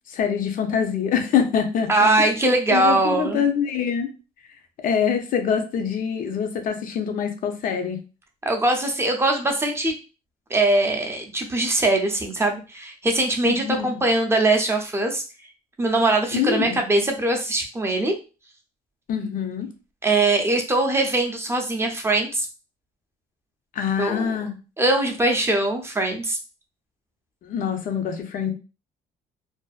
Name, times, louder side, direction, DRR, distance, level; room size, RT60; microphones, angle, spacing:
voice 1, 0.1-1.9 2.7-4.1 4.8-8.0 13.6-13.9 16.3-16.8 19.1-19.7 23.7-24.6 27.4-28.5, left 7 dB, 55° left, 5 dB, 0.6 m, -24 dB
voice 2, 1.9-3.4 8.4-10.0 10.5-15.2 15.8-18.1 20.0-22.5 24.0-24.3 24.8-26.4, right 2 dB, 15° right, 3 dB, 0.5 m, -21 dB
2.6 x 2.1 x 2.3 m, 0.32 s
cardioid pair, 110°, 17 cm